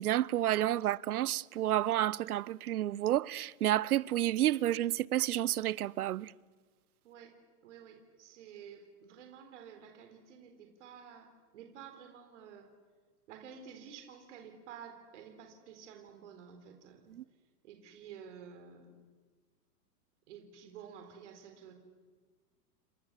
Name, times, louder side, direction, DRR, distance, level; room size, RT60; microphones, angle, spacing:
voice 1, 0.0-6.3 17.1-17.2, right 13 dB, 65° right, 0.8 m, -30 dB
voice 2, 7.6-12.7 13.3-17.1 17.6-18.9 20.3-21.7, right 7 dB, 45° right, 3.9 m, -51 dB
29.5 x 26.0 x 7.4 m
hypercardioid pair, 170°, 48 cm